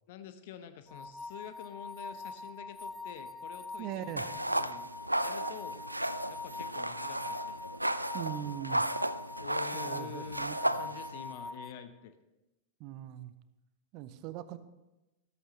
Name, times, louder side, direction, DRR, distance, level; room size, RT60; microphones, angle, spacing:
voice 1, 0.1-4.9 5.2-5.8 6.3-7.7 9.4-10.4 10.7-12.1, left 9 dB, 50° left, 10 dB, 0.8 m, -47 dB
sound 1, 0.9-11.7, left 3 dB, 5° left, 0.7 m, -44 dB
voice 2, 3.8-4.3 8.1-8.9 9.7-10.8 12.8-13.3 13.9-14.6, right 12 dB, 40° right, 13 dB, 0.8 m, -40 dB
sound 2, 4.2-11.3, right 1 dB, 85° right, 0.4 m, -34 dB
14.0 x 13.5 x 3.2 m, 1.0 s
figure-of-eight pair, 90°, 0 cm